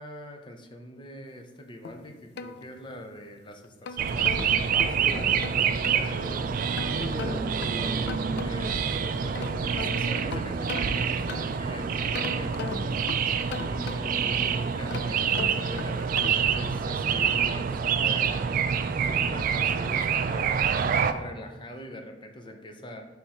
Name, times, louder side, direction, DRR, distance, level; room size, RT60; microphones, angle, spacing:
voice 1, 0.0-5.4 5.9-6.6 8.4-13.1 13.6-18.6 19.0-20.7 21.0-23.1, left 1 dB, 25° left, 4 dB, 0.7 m, -43 dB
sound 1, 1.8-3.2 3.6-6.1 6.8-8.8 9.1-11.7 12.1-14.3 14.8-16.6, left 5 dB, 65° left, 0.4 m, -39 dB
sound 2, 4.0-21.1, right 7 dB, 50° right, 0.3 m, -27 dB
voice 2, 4.7-6.3 6.9-8.8, left 1 dB, 20° right, -4 dB, 1.5 m, -40 dB
9.6 x 3.5 x 3.0 m, 1.1 s
head